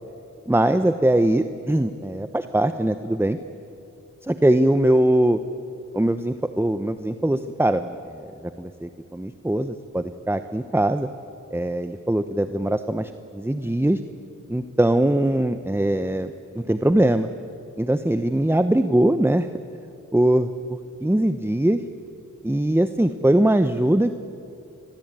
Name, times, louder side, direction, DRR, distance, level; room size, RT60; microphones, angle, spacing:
voice 1, 0.5-3.4 4.2-5.4 5.9-8.3 8.6-11.1 11.5-14.0 14.5-17.3 17.8-19.5 20.1-20.5 21.0-21.8 22.4-24.1, right 1 dB, 5° right, 10 dB, 0.9 m, -21 dB
28.5 x 22.5 x 9.0 m, 2.7 s
wide cardioid pair, 60°, 32 cm